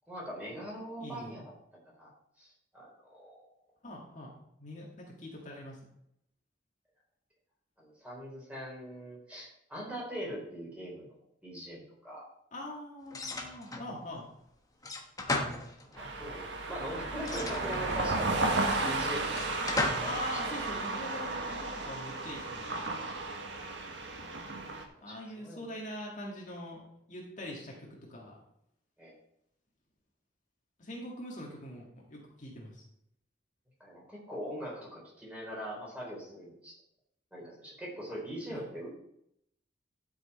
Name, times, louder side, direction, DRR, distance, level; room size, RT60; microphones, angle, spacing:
voice 1, 0.1-1.5 2.0-2.1 2.4-3.4 7.8-11.2 11.4-12.2 15.9-19.4 19.7-20.1 25.1-25.6 29.0-29.1 33.8-36.7 37.3-39.0, equal, 10° right, -4 dB, 3.9 m, -42 dB
voice 2, 1.0-1.3 3.8-4.3 4.6-5.8 12.5-14.3 20.0-22.7 25.0-28.4 30.8-32.8 38.5-38.7, left 1 dB, 45° left, -2 dB, 2.0 m, -43 dB
sound 1, 13.1-13.9 14.8-16.1 17.2-18.3 19.3-20.2, left 2 dB, 20° left, 1.2 m, -35 dB
sound 2, 16.0-24.8, right 2 dB, 85° right, 1.4 m, -34 dB
12.0 x 6.3 x 4.2 m, 0.76 s
head